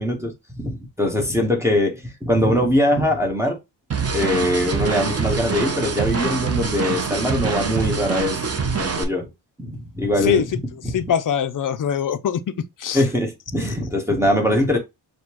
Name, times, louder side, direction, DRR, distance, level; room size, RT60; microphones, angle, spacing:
voice 1, 0.0-3.6 4.1-8.4 8.8-9.3 9.6-10.4 10.8-11.1 12.9-14.8, left 1 dB, 5° right, 1.0 m, -22 dB
sound 1, 3.9-9.0, right 5 dB, 30° right, 0.7 m, -24 dB
voice 2, 10.9-12.5 12.8-13.0, left 8 dB, 45° left, 0.4 m, -22 dB
6.5 x 2.2 x 2.9 m
wide cardioid pair, 125°, 48 cm